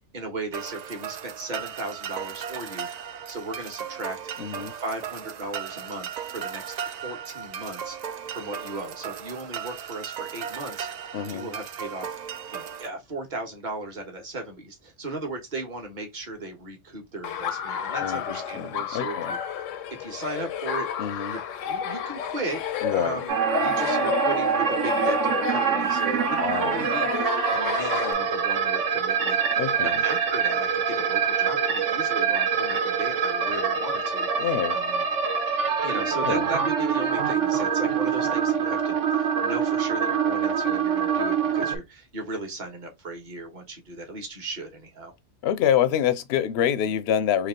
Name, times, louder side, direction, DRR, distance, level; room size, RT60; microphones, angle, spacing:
voice 1, 0.1-2.9 3.3-4.2 4.7-6.6 7.0-8.0 8.3-10.9 11.3-12.1 12.5-19.4 20.0-21.4 21.7-22.6 22.9-35.1 35.8-45.1, right 2 dB, 40° right, 1.3 m, -36 dB
sound 1, 0.5-12.9, right 8 dB, 85° right, 0.3 m, -36 dB
voice 2, 4.4-4.7 11.1-11.5 18.0-19.3 21.0-21.4 22.8-23.2 26.4-26.8 29.6-30.0 34.4-34.8 36.2-36.5 45.4-47.5, left 9 dB, 65° left, 0.7 m, -26 dB
Laughter, 17.2-28.1, left 8 dB, 85° left, 1.0 m, -31 dB
sound 2, 23.3-41.8, right 6 dB, 70° right, 1.2 m, -25 dB
3.4 x 3.0 x 3.7 m
omnidirectional pair, 1.3 m